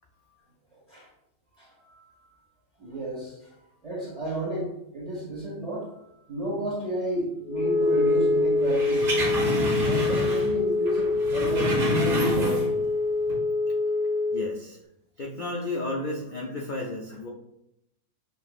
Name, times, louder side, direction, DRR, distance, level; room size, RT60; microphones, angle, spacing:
voice 1, 1.6-2.0 2.8-5.9 6.3-9.1 9.9-12.7, right 1 dB, 25° right, -8 dB, 1.7 m, -32 dB
Wind instrument woodwind instrument, 7.5-14.6, left 3 dB, 35° left, 1.1 m, -25 dB
sound 1, 8.6-10.6 10.9-12.9 13.2-13.3, equal, 60° right, 1.6 m, -28 dB
voice 2, 14.3-14.8 15.2-17.3, left 2 dB, 75° left, -1 dB, 0.4 m, -32 dB
6.8 x 2.9 x 2.4 m, 0.80 s
omnidirectional pair, 1.6 m